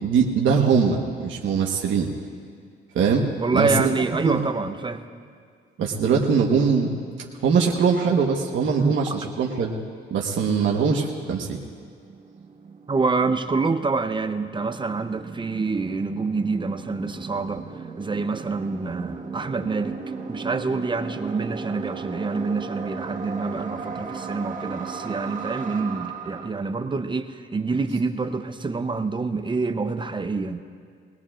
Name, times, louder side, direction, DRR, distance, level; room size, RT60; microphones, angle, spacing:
voice 1, 0.0-2.1 2.9-3.9 4.2-4.4 5.8-7.0 7.4-9.7 10.1-11.6, right 5 dB, 75° right, -1 dB, 1.3 m, -22 dB
voice 2, 3.4-5.1 8.8-9.2 12.9-20.0 20.3-30.6, right 4 dB, 25° right, 9 dB, 0.7 m, -26 dB
sound 1, 11.6-26.5, right 5 dB, 40° right, 1.7 m, -36 dB
22.0 x 18.0 x 2.5 m, 2.1 s
cardioid pair, 90°, 20 cm